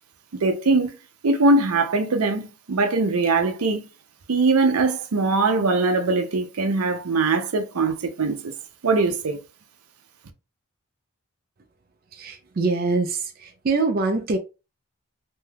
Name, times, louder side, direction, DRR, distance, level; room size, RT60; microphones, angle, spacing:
voice 1, 0.3-1.0 1.2-3.9 4.3-8.5 8.8-9.4, right 3 dB, 85° right, 0.6 m, -21 dB
voice 2, 12.1-14.4, right 3 dB, 40° right, 0.4 m, -24 dB
2.7 x 2.3 x 3.3 m
head